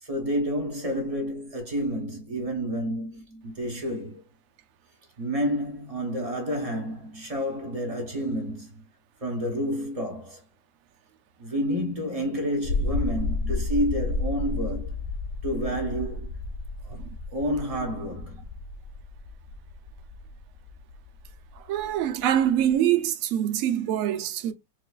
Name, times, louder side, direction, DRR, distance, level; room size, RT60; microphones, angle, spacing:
voice 1, 0.0-4.2 5.2-8.8 9.2-10.4 11.4-15.0 15.4-16.3 16.8-17.0 17.3-18.5, equal, 35° right, 0.6 m, -29 dB
sound 1, 12.6-22.7, left 2 dB, 70° left, 1.0 m, -32 dB
voice 2, 21.6-24.5, right 11 dB, 70° right, 0.8 m, -25 dB
4.6 x 2.5 x 2.3 m
omnidirectional pair, 2.0 m